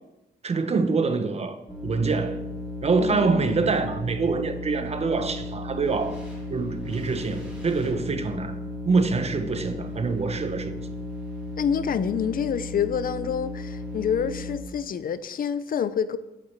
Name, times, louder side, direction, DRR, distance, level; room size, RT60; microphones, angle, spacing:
voice 1, 0.4-1.6 1.8-2.4 2.8-6.2 6.5-8.5 8.8-10.8, right 4 dB, 40° right, 1.0 m, -25 dB
sound 1, 1.7-14.6, left 1 dB, 5° right, 3.2 m, -35 dB
voice 2, 3.0-3.7 11.6-16.2, left 8 dB, 55° left, 0.6 m, -27 dB
8.4 x 8.3 x 7.3 m
wide cardioid pair, 135°, 17 cm